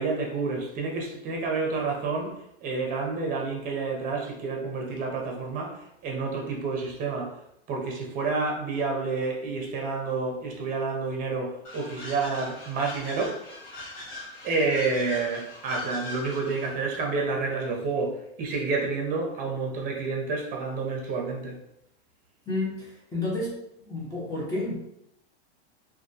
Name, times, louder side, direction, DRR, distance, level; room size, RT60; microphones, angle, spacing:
voice 1, 0.0-7.4 7.7-13.4 14.4-21.6, right 4 dB, 25° right, 0 dB, 0.6 m, -29 dB
sound 1, 11.6-16.8, left 2 dB, 60° left, 1.0 m, -41 dB
voice 2, 22.5-24.8, left 2 dB, 10° left, -7 dB, 0.6 m, -31 dB
2.2 x 2.1 x 2.7 m, 0.80 s
supercardioid pair, 130°, 31 cm